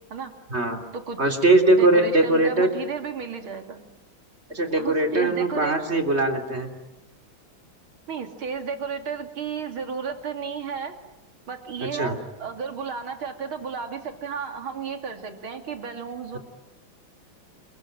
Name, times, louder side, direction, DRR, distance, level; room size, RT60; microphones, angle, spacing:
voice 1, 1.2-2.8 4.5-6.7 11.8-12.2, right 2 dB, 30° right, 5 dB, 3.5 m, -21 dB
voice 2, 1.7-3.8 4.8-5.7 8.1-11.0 11.5-16.4, right 5 dB, 75° right, 6 dB, 3.6 m, -33 dB
29.5 x 22.5 x 9.0 m, 0.94 s
omnidirectional pair, 2.3 m